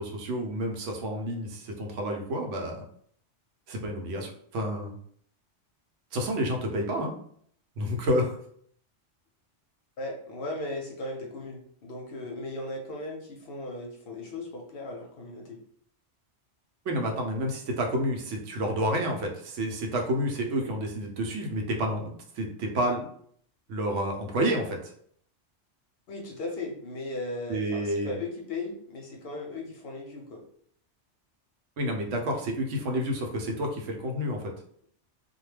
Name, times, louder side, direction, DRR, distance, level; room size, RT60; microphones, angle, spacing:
voice 1, 0.0-2.8 3.7-4.9 6.1-7.1 7.8-8.4 16.9-23.0 23.7-24.8 27.5-28.1 31.8-34.5, equal, 85° right, 2 dB, 0.9 m, -29 dB
voice 2, 10.0-15.6 26.1-30.4, left 2 dB, 60° left, 1 dB, 0.7 m, -37 dB
2.2 x 2.2 x 3.2 m, 0.62 s
omnidirectional pair, 1.2 m